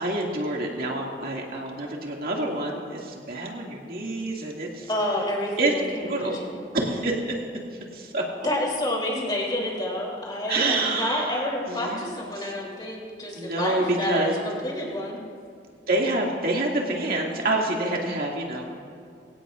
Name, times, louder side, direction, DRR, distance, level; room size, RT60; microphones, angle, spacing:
voice 1, 0.0-4.9 5.6-5.7 6.0-6.4 6.7-7.4 7.9-8.2 10.5-12.0 12.4-12.5 13.3-14.3 15.9-18.7, right 2 dB, 55° right, -1 dB, 2.3 m, -27 dB
voice 2, 4.9-6.6 8.4-15.2, left 1 dB, 25° left, -3 dB, 3.4 m, -29 dB
23.5 x 17.0 x 2.5 m, 2.3 s
head